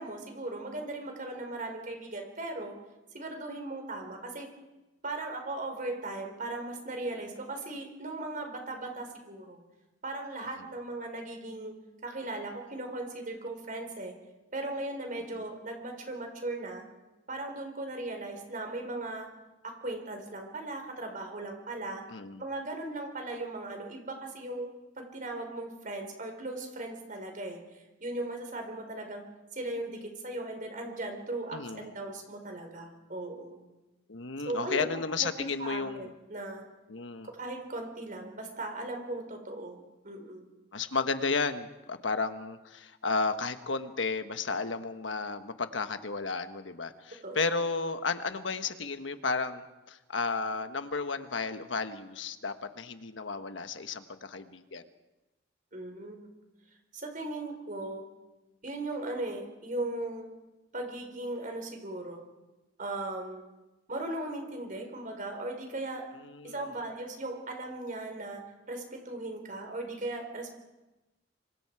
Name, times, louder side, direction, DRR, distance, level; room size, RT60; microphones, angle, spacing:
voice 1, 0.0-2.8 3.1-4.5 5.0-9.6 10.0-11.7 12.0-14.1 14.5-16.8 17.3-19.3 19.8-22.0 22.4-24.7 25.0-29.2 29.5-33.6 34.4-34.9 35.2-36.6 37.4-39.8 40.0-40.5 47.2-47.5 55.7-56.3 56.9-58.1 58.6-60.3 60.7-62.3 62.8-63.5 63.9-66.0 66.4-68.4 68.7-70.5, right 2 dB, 45° right, 3 dB, 4.7 m, -38 dB
voice 2, 22.1-22.4 31.5-31.9 34.1-36.1 36.9-37.3 40.7-54.8 66.2-66.6, left 4 dB, 85° left, 9 dB, 1.3 m, -33 dB
26.5 x 25.0 x 4.8 m, 1.0 s
head